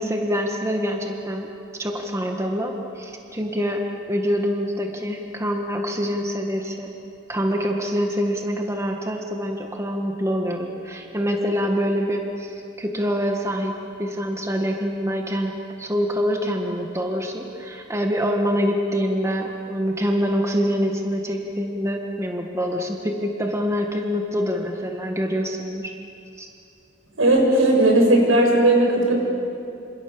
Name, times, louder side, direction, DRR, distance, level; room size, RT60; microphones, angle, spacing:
voice 1, 0.0-3.8 4.1-6.9 7.3-25.9 26.4-26.5, equal, 15° right, 2 dB, 1.8 m, -25 dB
voice 2, 27.2-29.1, right 1 dB, 85° right, 0 dB, 6.9 m, -16 dB
27.5 x 27.0 x 7.2 m, 2.6 s
head